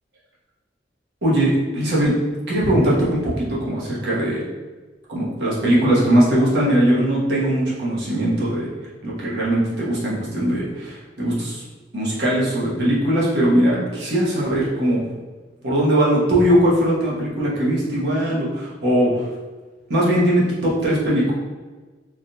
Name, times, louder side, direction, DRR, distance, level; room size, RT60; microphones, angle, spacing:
voice 1, 1.2-2.2 2.5-4.4 5.1-8.7 9.0-11.6 11.9-15.0 15.6-19.3 19.9-21.3, right 1 dB, 70° right, -6 dB, 1.0 m, -20 dB
3.5 x 2.2 x 2.7 m, 1.3 s
head